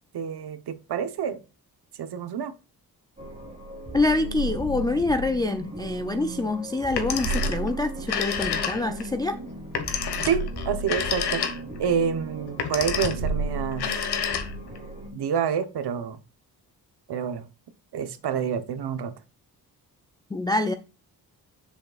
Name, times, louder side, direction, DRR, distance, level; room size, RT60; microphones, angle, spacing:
voice 1, 0.1-1.4 2.0-2.5 10.2-11.4 11.8-13.9 15.1-16.2 17.1-17.5 17.9-19.1, right 7 dB, 75° right, 1.0 m, -28 dB
sound 1, 3.2-15.1, right 2 dB, 15° right, 3.2 m, -34 dB
voice 2, 3.9-9.4 20.3-20.8, left 2 dB, 10° left, 0.3 m, -26 dB
Telephone, 6.8-7.7 8.0-9.1 9.7-11.8 12.5-13.3 13.7-14.8, left 7 dB, 75° left, 1.4 m, -29 dB
7.9 x 6.8 x 2.4 m
wide cardioid pair, 160°, 40 cm